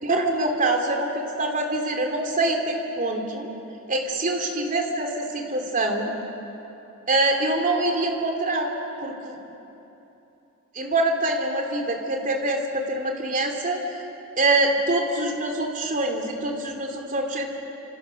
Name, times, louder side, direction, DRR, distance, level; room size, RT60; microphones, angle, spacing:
voice 1, 0.0-3.5 3.9-6.1 7.1-8.7 9.0-9.4 10.7-13.8 14.4-17.5, right 2 dB, 40° right, 3 dB, 3.1 m, -25 dB
30.0 x 27.0 x 6.6 m, 3.0 s
head